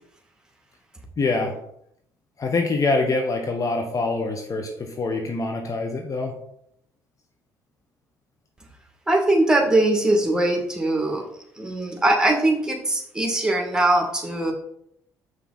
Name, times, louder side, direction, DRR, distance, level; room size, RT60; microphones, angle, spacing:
voice 1, 1.2-1.6 2.4-6.4, left 3 dB, 40° left, 4 dB, 1.3 m, -25 dB
voice 2, 9.1-11.2 11.6-14.5, right 1 dB, 10° right, 1 dB, 2.3 m, -21 dB
7.5 x 5.8 x 4.2 m, 0.72 s
hypercardioid pair, 50°, 9 cm